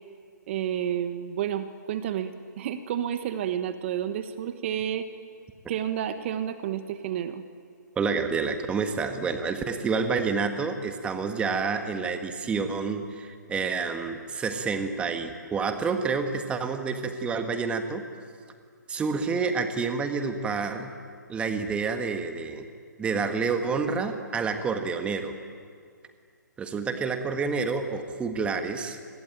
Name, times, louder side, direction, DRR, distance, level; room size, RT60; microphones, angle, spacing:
voice 1, 0.5-2.3 2.6-5.1 5.7-7.4, right 10 dB, 40° right, 10 dB, 1.4 m, -30 dB
voice 2, 7.9-18.0 18.9-20.9 21.3-22.7 23.0-25.3 26.6-29.0, right 5 dB, 10° right, 7 dB, 1.6 m, -28 dB
28.0 x 21.5 x 9.0 m, 2.1 s
hypercardioid pair, 140°, 10 cm